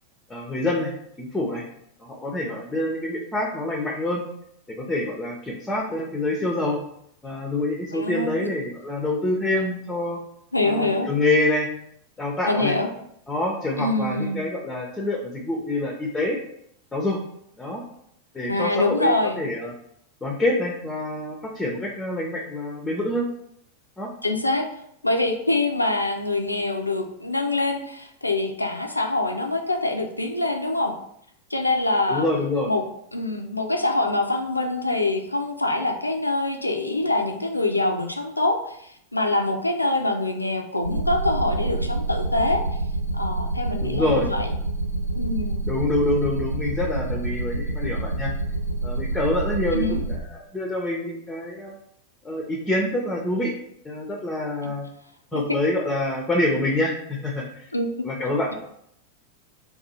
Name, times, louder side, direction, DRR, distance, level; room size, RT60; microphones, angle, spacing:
voice 1, 0.3-1.6 2.0-4.2 4.8-6.8 7.2-10.2 10.6-11.7 12.2-12.7 13.3-16.4 16.9-17.2 17.6-17.8 18.3-19.7 20.2-23.3 24.0-24.1 32.1-32.7 43.8-44.3 45.7-48.3 48.8-51.8 52.2-53.5 53.8-54.9 55.3-57.7 58.0-58.5, left 1 dB, 10° left, 0 dB, 0.5 m, -26 dB
voice 2, 7.9-8.5 10.5-11.1 12.5-12.9 13.8-14.4 18.5-19.4 24.2-24.7 25.0-30.9 31.5-32.3 32.7-32.9 33.1-42.6 43.1-44.5 45.1-45.6 49.7-50.0 55.3-55.4 57.7-58.1, left 2 dB, 85° left, 4 dB, 0.3 m, -25 dB
sound 1, 40.8-50.2, right 2 dB, 85° right, 0.4 m, -27 dB
2.6 x 2.3 x 4.1 m, 0.73 s
figure-of-eight pair, 90°, 0 cm